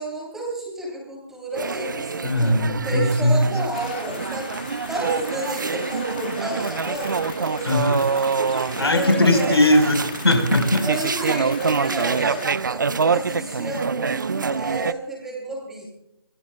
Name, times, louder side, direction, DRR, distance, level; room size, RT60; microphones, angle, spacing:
voice 1, 0.0-9.6 10.8-15.9, right 2 dB, 5° right, -2 dB, 3.2 m, -31 dB
sound 1, 1.5-14.9, right 5 dB, 50° right, 0.6 m, -26 dB
voice 2, 2.2-3.4 7.6-8.0 8.8-10.9, left 1 dB, 85° left, 6 dB, 4.5 m, -19 dB
sound 2, 3.7-12.6, left 8 dB, 25° left, 1.2 m, -40 dB
sound 3, 6.6-12.2, left 3 dB, 65° left, 5.5 m, -42 dB
25.5 x 19.5 x 2.3 m, 0.78 s
figure-of-eight pair, 160°, 13 cm